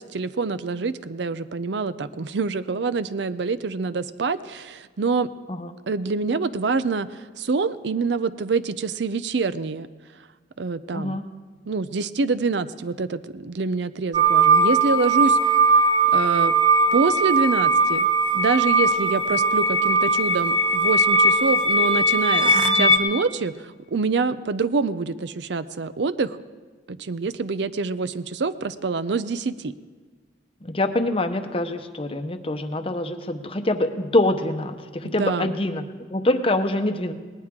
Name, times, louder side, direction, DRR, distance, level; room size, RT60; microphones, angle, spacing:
voice 1, 0.0-5.3 5.9-9.9 10.6-11.2 11.7-15.5 16.1-16.5 16.9-18.1 18.3-26.4 26.9-29.7 35.0-35.5, right 4 dB, 65° right, 14 dB, 0.5 m, -26 dB
voice 2, 10.9-11.2 22.5-23.0 30.6-37.1, left 1 dB, 30° left, 8 dB, 0.8 m, -25 dB
sound 1, 14.1-23.0, right 2 dB, 25° right, 1.0 m, -19 dB
19.5 x 19.0 x 3.7 m, 1.4 s
head